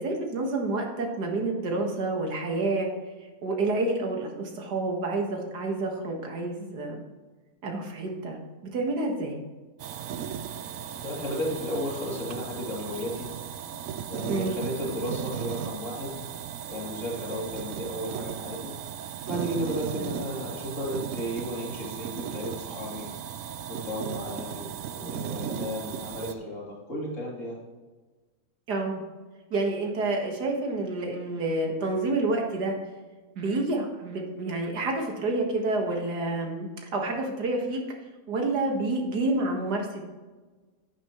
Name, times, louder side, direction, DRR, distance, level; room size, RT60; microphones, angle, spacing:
voice 1, 0.0-2.9 3.4-7.0 7.6-8.4 8.7-9.4 14.3-14.6 20.0-20.1 28.7-29.0 29.5-32.8 33.4-37.8 38.3-40.0, right 2 dB, 85° right, 1 dB, 2.2 m, -28 dB
sound 1, 9.8-26.3, right 9 dB, 65° right, 0.9 m, -36 dB
voice 2, 11.0-13.4 14.1-16.2 16.7-18.8 19.3-23.1 23.7-27.6, equal, 50° left, -4 dB, 3.5 m, -34 dB
10.5 x 10.0 x 3.1 m, 1.3 s
omnidirectional pair, 1.7 m